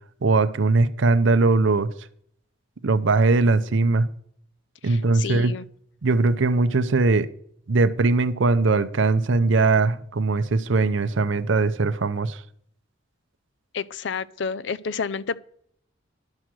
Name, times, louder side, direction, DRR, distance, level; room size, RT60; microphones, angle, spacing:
voice 1, 0.2-1.9 2.8-4.1 4.8-5.5 6.0-7.3 7.7-12.4, right 3 dB, 65° right, 0.6 m, -20 dB
voice 2, 4.8-5.6 13.7-15.4, left 5 dB, 60° left, 0.5 m, -30 dB
11.5 x 6.3 x 7.5 m
head